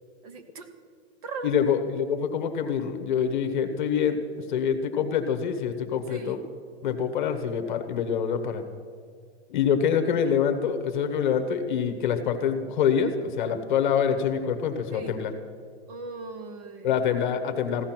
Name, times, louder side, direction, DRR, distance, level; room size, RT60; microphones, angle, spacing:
voice 1, 0.2-0.7 1.2-1.6 5.9-6.4 14.9-15.2 15.9-16.9, right 3 dB, 35° right, 8 dB, 1.2 m, -39 dB
voice 2, 1.4-4.2 4.5-6.4 6.8-8.6 9.5-15.3 16.8-17.8, left 7 dB, 45° left, 8 dB, 1.2 m, -25 dB
15.5 x 13.0 x 6.0 m, 2.1 s
supercardioid pair, 175°, 33 cm